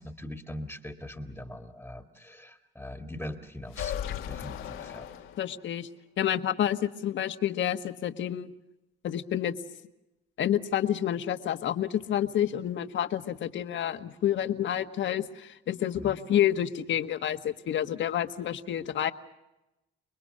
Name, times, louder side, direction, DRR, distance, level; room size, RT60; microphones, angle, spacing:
voice 1, 0.0-5.1 16.0-16.2, left 1 dB, 5° left, 6 dB, 1.9 m, -41 dB
sound 1, 3.7-5.8, left 10 dB, 85° left, 1.7 m, -37 dB
voice 2, 5.4-5.9 6.2-8.5 9.0-9.5 10.4-19.1, left 10 dB, 70° left, 9 dB, 1.5 m, -29 dB
29.5 x 21.0 x 6.6 m, 0.94 s
cardioid pair, 90°, 20 cm